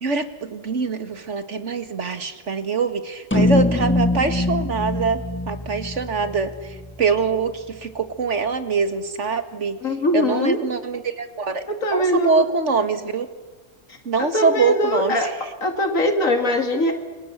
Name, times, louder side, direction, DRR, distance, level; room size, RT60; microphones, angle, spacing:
voice 1, 0.0-9.8 10.1-11.6 11.9-13.3 14.1-15.3, right 4 dB, 60° right, 9 dB, 2.2 m, -24 dB
sound 1, 3.3-7.8, left 1 dB, 10° left, 1.1 m, -24 dB
voice 2, 9.8-10.6 11.8-12.5 13.9-15.3 15.6-16.9, left 1 dB, 80° left, 5 dB, 2.6 m, -21 dB
29.0 x 24.5 x 8.3 m, 1.3 s
omnidirectional pair, 1.4 m